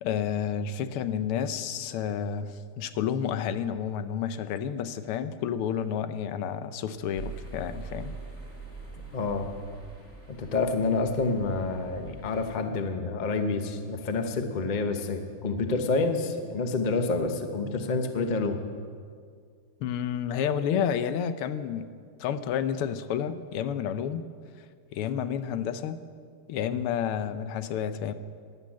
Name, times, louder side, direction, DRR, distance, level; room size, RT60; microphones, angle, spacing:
voice 1, 0.0-8.1 19.8-21.9 22.2-24.3 24.9-26.0 26.5-28.1, left 8 dB, 85° left, 12 dB, 1.6 m, -30 dB
sound 1, 7.2-12.6, right 3 dB, 5° left, 1.7 m, -43 dB
voice 2, 9.1-9.5 10.3-18.6, left 3 dB, 40° left, 6 dB, 0.6 m, -28 dB
12.5 x 11.0 x 8.6 m, 2.1 s
omnidirectional pair, 2.4 m